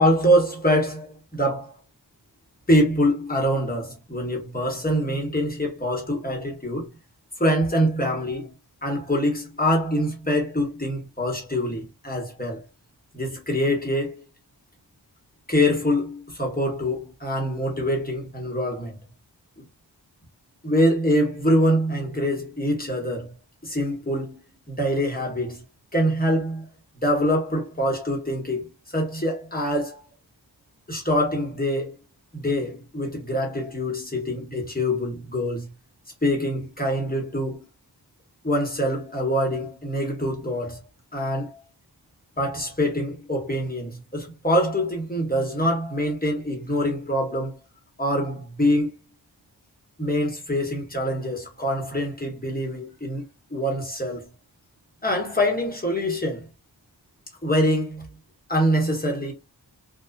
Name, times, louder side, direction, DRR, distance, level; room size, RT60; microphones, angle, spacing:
voice 1, 0.0-1.7 2.7-6.9 7.4-8.5 8.8-12.6 13.1-14.2 15.5-19.0 19.6-19.7 20.6-23.3 23.6-24.4 24.7-25.6 25.9-26.7 27.0-30.0 30.9-32.0 32.3-35.7 36.2-37.6 38.4-40.8 41.1-41.6 42.4-47.6 48.0-48.9 50.0-54.3 55.0-56.5 57.4-58.1 58.5-59.3, equal, 20° left, 1.2 m, -24 dB
2.4 x 2.3 x 2.3 m
wide cardioid pair, 60°, 43 cm